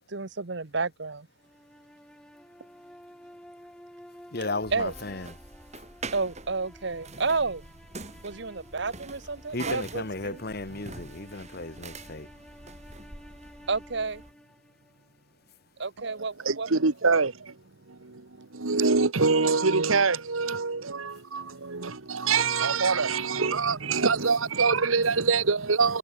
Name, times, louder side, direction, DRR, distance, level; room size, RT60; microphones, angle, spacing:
voice 1, 0.1-1.3 4.7-4.9 6.1-7.7 8.2-10.4 13.7-14.2 15.8-17.2 23.3-24.1 24.6-25.3 25.6-26.0, right 4 dB, 55° right, 1.1 m, -32 dB
sound 1, 1.4-15.5, equal, 5° left, 6.5 m, -52 dB
voice 2, 4.3-5.4 5.7-5.8 9.5-12.3, left 2 dB, 50° left, 2.2 m, -35 dB
sound 2, 4.6-14.3, right 3 dB, 35° right, 7.1 m, -44 dB
voice 3, 16.4-17.5 17.9-26.0, right 4 dB, 85° right, 1.4 m, -25 dB
head